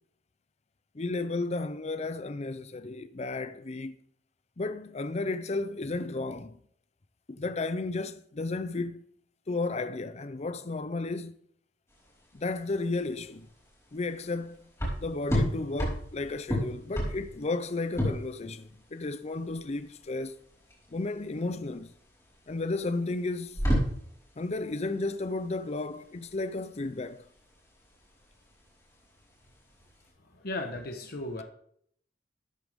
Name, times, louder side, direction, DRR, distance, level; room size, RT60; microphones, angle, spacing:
voice 1, 0.9-4.0 4.6-6.6 7.3-9.0 9.5-11.3 12.3-13.5 13.9-14.7 15.0-20.4 20.9-21.9 22.5-23.6 24.4-27.3, left 3 dB, 40° left, 0.6 m, -33 dB
sound 1, 11.9-30.1, equal, 15° left, 4.9 m, -34 dB
voice 2, 30.3-31.4, left 2 dB, 60° left, 1.3 m, -35 dB
13.0 x 8.7 x 3.7 m
head